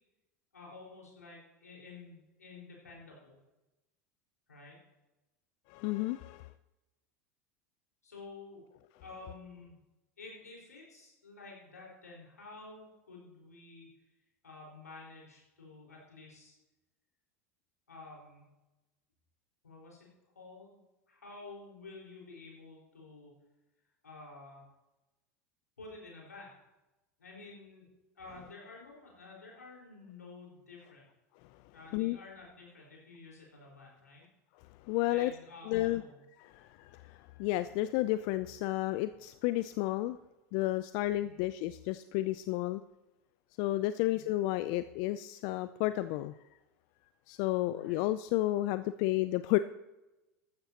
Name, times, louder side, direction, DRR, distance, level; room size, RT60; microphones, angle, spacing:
voice 1, 0.5-3.4 4.5-4.8 8.0-8.7 9.0-9.8 10.2-13.9 14.4-16.5 17.9-18.4 19.6-20.1 20.3-20.8 21.1-23.3 24.0-24.6 25.8-26.5 27.2-27.9 28.2-31.0 31.7-34.2 35.1-36.2 41.2-41.4 44.0-44.3 47.7-48.0, left 3 dB, 90° left, -2 dB, 4.7 m, -51 dB
voice 2, 5.7-6.5 31.9-32.2 34.8-35.3 35.7-36.0 36.4-40.2 40.5-42.8 43.6-46.4 47.3-49.6, left 16 dB, 55° left, 13 dB, 0.5 m, -32 dB
14.5 x 12.5 x 2.9 m, 1.0 s
hypercardioid pair, 85°, 8 cm